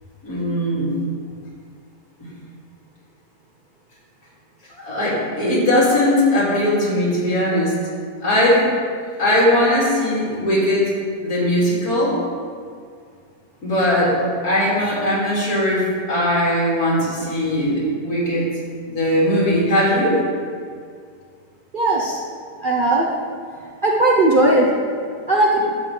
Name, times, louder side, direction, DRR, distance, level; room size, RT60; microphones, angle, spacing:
voice 1, 0.2-0.9 2.2-2.3 4.7-7.7 8.2-8.7 9.2-10.9 11.2-12.2 13.6-14.2 14.4-18.5 18.8-20.2, left 1 dB, 60° left, -6 dB, 2.9 m, -19 dB
voice 2, 21.7-22.2 22.6-23.1 23.8-24.7 25.3-25.6, right 2 dB, 45° right, -3 dB, 0.7 m, -17 dB
11.5 x 7.2 x 3.3 m, 2.1 s
omnidirectional pair, 1.7 m